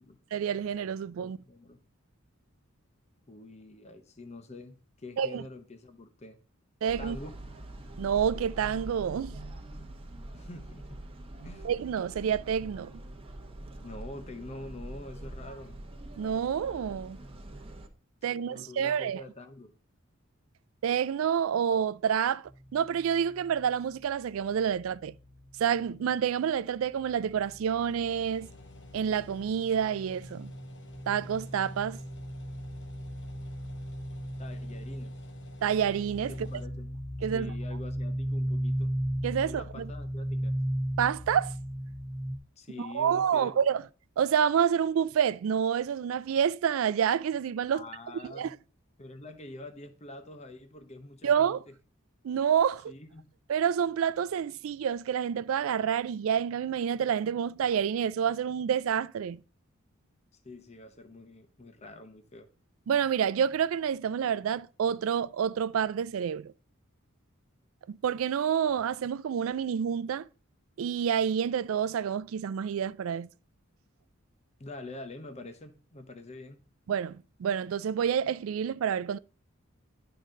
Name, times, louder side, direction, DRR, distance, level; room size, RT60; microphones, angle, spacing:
voice 1, 0.3-1.4 5.2-5.4 6.8-7.2 8.0-9.5 11.6-12.9 16.2-17.2 18.2-19.2 20.8-22.4 22.7-25.1 25.6-28.5 28.9-30.5 31.1-32.0 35.6-36.3 37.2-37.5 39.2-39.9 41.0-41.5 42.8-43.8 44.2-47.8 48.4-48.5 51.2-51.6 52.2-52.9 53.5-59.4 62.9-66.5 67.9-70.3 70.8-73.3 76.9-79.2, right 8 dB, 75° right, 0.3 m, -28 dB
voice 2, 1.2-1.8 3.3-6.4 7.0-7.4 10.3-11.0 11.4-11.7 13.8-15.8 18.3-19.7 34.4-35.1 36.3-37.1 37.3-38.9 39.4-40.6 42.6-43.6 47.7-48.6 49.0-51.7 52.9-53.3 60.4-62.5 74.6-76.6, left 2 dB, 30° left, 0.8 m, -46 dB
sound 1, 6.9-17.9, right 1 dB, 25° right, 1.0 m, -44 dB
sound 2, 22.5-26.3 26.6-42.4, equal, 5° right, 0.5 m, -37 dB
sound 3, 27.5-36.7, left 2 dB, 55° left, 0.9 m, -54 dB
11.0 x 3.9 x 5.1 m
head